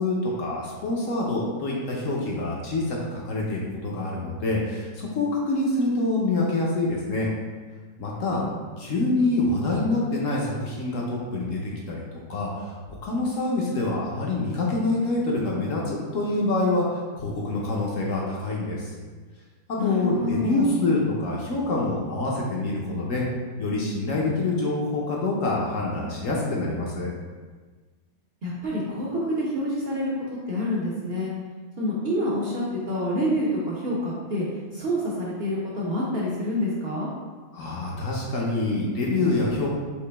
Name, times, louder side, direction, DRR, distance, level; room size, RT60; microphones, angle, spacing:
voice 1, 0.0-7.3 8.0-8.4 8.8-12.7 13.0-18.9 19.7-23.2 23.6-27.1 37.5-39.7, left 2 dB, 60° left, -3 dB, 0.9 m, -26 dB
voice 2, 19.8-20.8 28.4-30.1 30.5-31.3 31.8-34.5 34.7-37.1, left 1 dB, 55° right, -5 dB, 0.6 m, -27 dB
4.9 x 2.9 x 3.3 m, 1.4 s
omnidirectional pair, 1.9 m